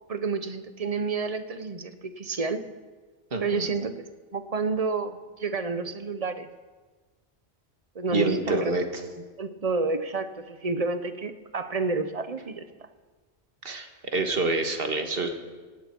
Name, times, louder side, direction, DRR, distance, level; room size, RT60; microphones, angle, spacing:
voice 1, 0.1-2.6 3.4-3.9 4.3-6.5 7.9-8.7 9.4-12.6, right 4 dB, 40° right, 10 dB, 0.9 m, -29 dB
voice 2, 3.3-3.7 8.1-8.8 13.6-15.3, right 3 dB, 60° right, 5 dB, 1.7 m, -27 dB
17.5 x 16.0 x 4.5 m, 1.4 s
omnidirectional pair, 1.1 m